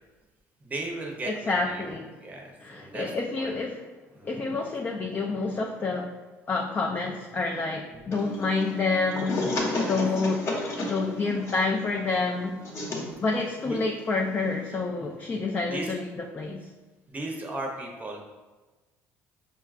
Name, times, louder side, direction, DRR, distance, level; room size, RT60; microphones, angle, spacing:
voice 1, 0.6-1.9 2.2-3.1 3.4-3.6 4.2-4.3 7.9-8.1 9.7-9.9 13.6-13.8 14.7-14.8 15.7-15.9 17.1-18.2, right 2 dB, 25° right, 1 dB, 0.7 m, -36 dB
voice 2, 1.3-2.2 2.6-3.9 4.2-6.1 6.5-9.5 9.9-10.5 10.9-12.6 13.2-16.7, left 3 dB, 30° left, 1 dB, 0.4 m, -28 dB
sound 1, 8.1-14.8, left 2 dB, 45° left, 0.9 m, -33 dB
5.4 x 2.3 x 2.4 m, 1.2 s
supercardioid pair, 90°, 7 cm